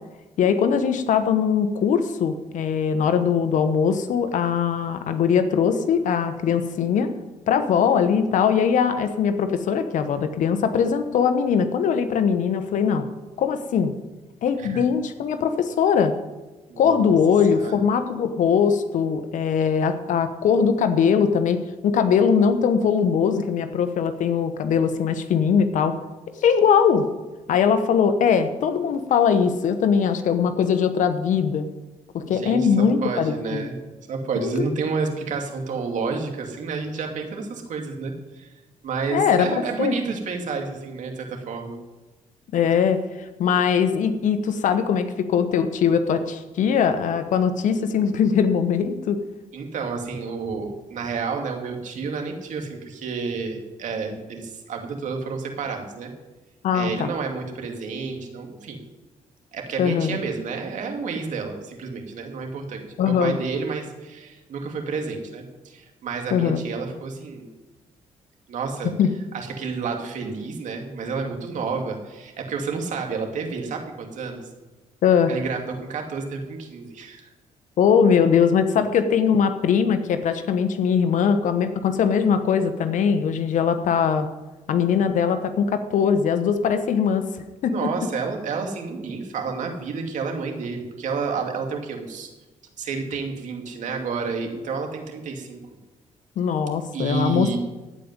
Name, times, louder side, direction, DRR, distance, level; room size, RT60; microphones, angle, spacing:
voice 1, 0.4-7.1 7.5-13.1 13.4-13.9 14.4-16.1 16.8-26.0 26.4-27.1 27.5-31.7 32.1-33.6 34.4-34.7 39.1-39.9 42.5-43.0 43.4-49.2 56.6-57.1 59.8-60.2 63.0-63.4 66.3-66.6 69.0-69.1 75.0-75.3 77.8-84.3 84.7-87.3 87.6-87.7 96.4-97.6, left 7 dB, 75° left, 9 dB, 1.1 m, -21 dB
voice 2, 16.7-17.1 17.5-17.8 32.3-33.8 34.1-38.5 38.8-41.8 49.5-56.1 56.7-58.8 59.5-67.5 68.5-68.9 69.3-74.5 75.3-77.3 87.6-92.3 92.8-95.6 96.9-97.6, right 4 dB, 70° right, 3 dB, 2.5 m, -30 dB
15.5 x 5.3 x 9.5 m, 1.1 s
cardioid pair, 85°, 13 cm